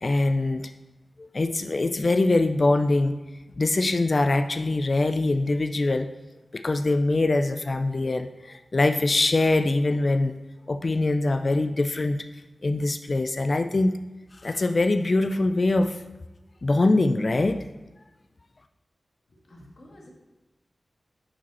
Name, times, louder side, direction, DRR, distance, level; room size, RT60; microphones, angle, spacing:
voice 1, 0.0-0.7 1.2-3.2 3.6-6.1 6.5-10.3 10.7-12.2 12.6-13.9 14.4-16.0 16.6-17.6, left 2 dB, 45° left, 8 dB, 0.3 m, -23 dB
voice 2, 19.3-20.1, left 1 dB, 70° left, -2 dB, 1.6 m, -50 dB
7.0 x 5.1 x 4.2 m, 1.1 s
wide cardioid pair, 110°, 0 cm